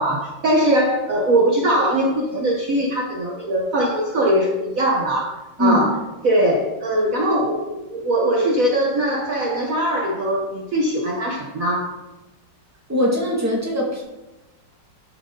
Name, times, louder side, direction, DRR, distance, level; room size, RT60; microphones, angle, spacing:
voice 1, 0.0-5.9 6.2-11.9, right 1 dB, 50° right, -2 dB, 1.4 m, -21 dB
voice 2, 12.9-14.0, left 1 dB, 10° right, -3 dB, 2.0 m, -21 dB
11.5 x 6.3 x 3.9 m, 1.0 s
omnidirectional pair, 2.0 m